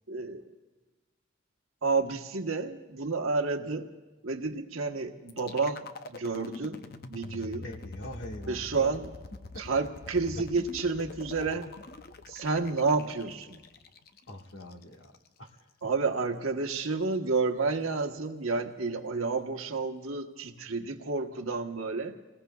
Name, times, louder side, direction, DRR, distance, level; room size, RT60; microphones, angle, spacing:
voice 1, 0.1-0.5 1.8-3.9 4.2-6.8 7.1-7.7 8.5-9.1 9.6-11.7 12.3-13.6 15.8-22.1, right 4 dB, 90° right, 4 dB, 1.2 m, -30 dB
sound 1, 5.3-15.3, left 3 dB, 45° left, 0.6 m, -45 dB
voice 2, 7.6-8.9 14.3-15.1 15.4-15.5, left 1 dB, 65° left, 2 dB, 1.6 m, -43 dB
26.5 x 20.0 x 2.3 m, 1.3 s
head